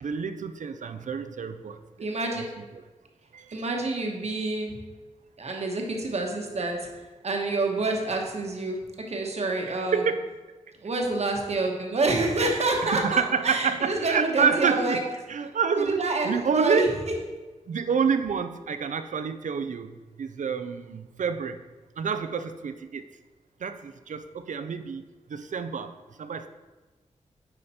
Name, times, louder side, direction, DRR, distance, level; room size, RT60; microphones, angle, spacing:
voice 1, 0.0-1.8 3.3-3.6 9.9-10.2 12.8-17.0 17.7-21.6 22.0-23.0 23.6-25.0 25.3-26.5, right 6 dB, 80° right, 10 dB, 0.6 m, -28 dB
voice 2, 2.0-2.4 3.5-4.8 5.4-8.8 9.1-10.0 10.8-15.0 15.7-17.1, right 2 dB, 60° right, 1 dB, 1.3 m, -27 dB
9.9 x 5.1 x 4.3 m, 1.2 s
wide cardioid pair, 95°, 13 cm